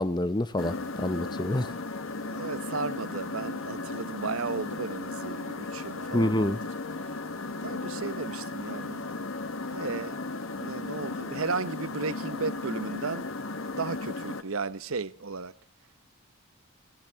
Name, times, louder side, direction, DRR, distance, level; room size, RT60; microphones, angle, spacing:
voice 1, 0.0-1.7 6.1-6.6, left 1 dB, 20° left, 0.7 m, -27 dB
sound 1, 0.6-14.4, left 3 dB, 65° left, 1.4 m, -36 dB
voice 2, 1.5-1.8 2.2-6.6 7.6-10.2 10.6-13.3 13.7-15.5, right 4 dB, 70° right, 0.9 m, -35 dB
25.5 x 15.0 x 3.5 m
head